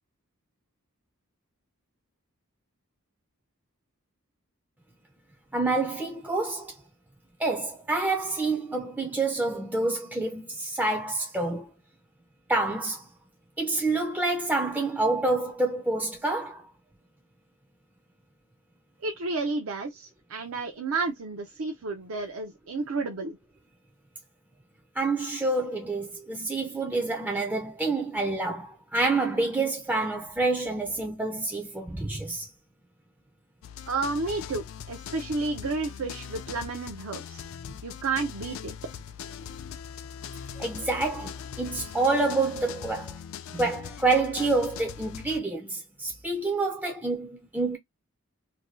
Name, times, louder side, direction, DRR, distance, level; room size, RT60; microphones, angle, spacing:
voice 1, 5.5-6.8 7.4-11.7 12.5-13.1 13.6-16.7 25.0-32.5 37.7-37.8 40.6-43.2 43.5-47.8, right 3 dB, 10° right, 0.4 m, -28 dB
voice 2, 19.0-23.4 33.9-37.4 37.8-38.7, right 3 dB, 75° right, 0.5 m, -31 dB
sound 1, 33.6-45.4, left 8 dB, 70° left, 0.3 m, -41 dB
2.7 x 2.2 x 3.0 m
head